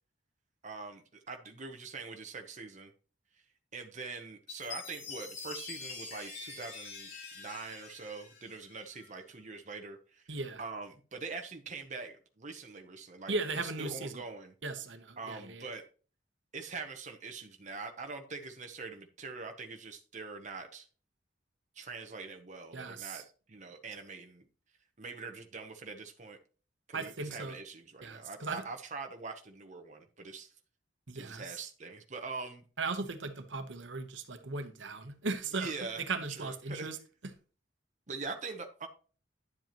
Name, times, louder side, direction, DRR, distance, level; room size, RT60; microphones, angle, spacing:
voice 1, 0.6-2.9 3.7-14.5 15.2-15.8 16.5-20.9 21.7-24.5 25.0-26.4 26.9-30.5 31.1-32.6 35.5-36.0 36.3-36.9 38.1-38.9, right 4 dB, 40° right, 0.9 m, -43 dB
Chime, 4.5-9.1, left 4 dB, 75° left, 3.7 m, -45 dB
voice 2, 10.3-10.6 13.3-14.1 14.6-15.7 22.7-23.2 26.9-27.6 28.0-28.6 31.1-31.6 32.8-37.0, right 3 dB, 70° right, 1.1 m, -37 dB
10.5 x 7.7 x 3.0 m
head